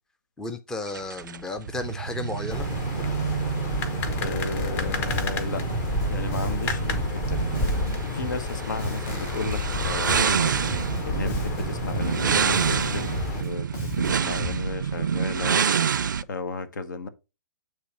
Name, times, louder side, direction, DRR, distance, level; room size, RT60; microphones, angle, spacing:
voice 1, 0.4-2.7, left 2 dB, 5° left, 0.5 m, -33 dB
sound 1, 0.9-16.2, right 7 dB, 80° right, 0.4 m, -28 dB
sound 2, 2.5-13.4, left 3 dB, 25° left, 0.9 m, -31 dB
voice 2, 4.2-5.6 6.1-7.5 8.1-15.6 16.3-17.1, left 3 dB, 70° left, 1.0 m, -34 dB
Bass guitar, 4.8-14.7, left 3 dB, 45° left, 2.9 m, -35 dB
8.3 x 3.2 x 4.3 m
hypercardioid pair, 135°, 10 cm